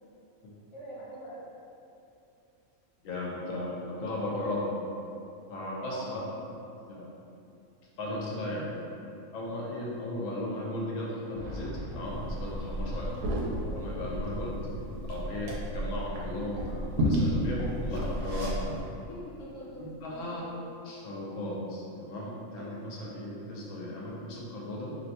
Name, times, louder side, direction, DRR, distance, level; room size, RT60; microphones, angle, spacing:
voice 1, 0.7-1.4 5.8-6.3 12.9-13.4 19.1-20.4, equal, 35° left, -9 dB, 0.5 m, -44 dB
voice 2, 3.0-4.7 5.5-6.2 6.9-7.1 8.0-8.7 9.3-13.1 13.6-14.6 15.1-18.7 19.8-20.4 20.8-25.0, left 1 dB, 75° left, -4 dB, 0.9 m, -36 dB
Boom, 11.3-16.1 16.3-16.4 17.6-17.7, equal, 65° right, 0.9 m, -43 dB
Liquid, 12.0-18.8, equal, 90° right, 1.1 m, -32 dB
2.6 x 2.2 x 4.1 m, 2.7 s
omnidirectional pair, 1.5 m